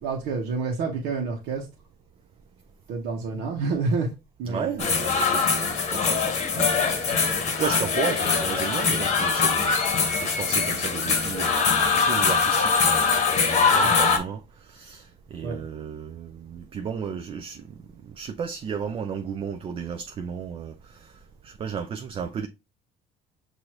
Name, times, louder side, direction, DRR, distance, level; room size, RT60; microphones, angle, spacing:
voice 1, 0.0-1.7 2.9-4.1 4.4-5.0 13.8-14.0 15.4-15.6, right 4 dB, 85° right, 1.0 m, -28 dB
voice 2, 4.5-6.7 7.5-13.0 13.3-17.6 18.0-21.1 21.4-22.5, right 7 dB, 30° right, 0.4 m, -34 dB
sound 1, 4.8-14.2, left 5 dB, 40° left, 0.9 m, -22 dB
6.1 x 2.7 x 2.9 m
cardioid pair, 140°, 17 cm